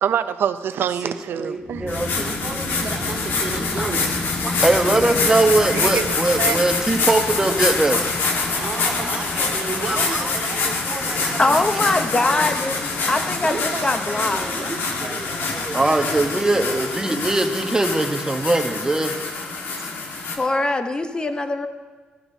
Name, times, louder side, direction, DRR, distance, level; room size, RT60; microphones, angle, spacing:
voice 1, 0.0-1.9 5.7-6.6, right 9 dB, 75° right, 12 dB, 0.5 m, -25 dB
voice 2, 1.0-2.4 3.8-3.9 4.4-8.6 9.8-10.2 11.5-11.6 15.1-15.2 15.5-19.2, right 2 dB, 15° right, 5 dB, 1.0 m, -21 dB
sound 1, 1.6-20.4, left 2 dB, 45° left, 1.3 m, -35 dB
sound 2, 1.9-20.4, left 3 dB, 75° left, 1.5 m, -25 dB
voice 3, 2.2-4.1 8.6-12.4 13.4-15.6, right 3 dB, 40° right, 0 dB, 1.8 m, -33 dB
voice 4, 11.4-14.4 20.4-21.7, left 2 dB, 25° left, 8 dB, 0.8 m, -22 dB
14.5 x 13.0 x 2.7 m, 1.4 s
cardioid pair, 95°, 4 cm